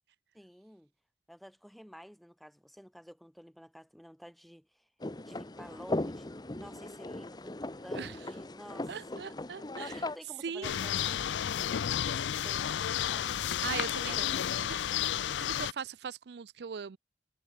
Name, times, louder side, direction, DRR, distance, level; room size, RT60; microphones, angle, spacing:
voice 1, 0.3-0.9 1.3-4.9 5.2-9.2 9.8-13.4 14.1-14.7, equal, ahead, 3.1 m, -52 dB
sound 1, 5.0-10.2, left 2 dB, 25° left, 0.8 m, -38 dB
voice 2, 8.9-10.0 10.4-10.8 13.6-14.4 14.7-14.9 15.4-17.0, right 6 dB, 65° right, 0.4 m, -40 dB
sound 2, 10.6-15.7, left 10 dB, 85° left, 0.4 m, -32 dB
head